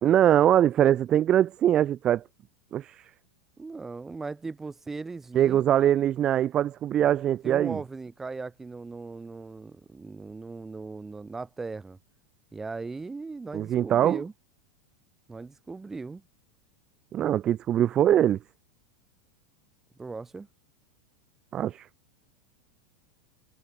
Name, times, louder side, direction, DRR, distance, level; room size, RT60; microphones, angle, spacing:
voice 1, 0.0-2.2 2.7-3.1 5.3-7.8 13.5-14.2 17.1-18.4 21.5-21.9, right 11 dB, 35° right, 2.3 m, -22 dB
voice 2, 3.6-5.6 7.4-12.0 12.5-14.3 15.3-16.2 20.0-20.5, right 4 dB, 15° right, 6.0 m, -38 dB
hypercardioid pair, 100°, 2 cm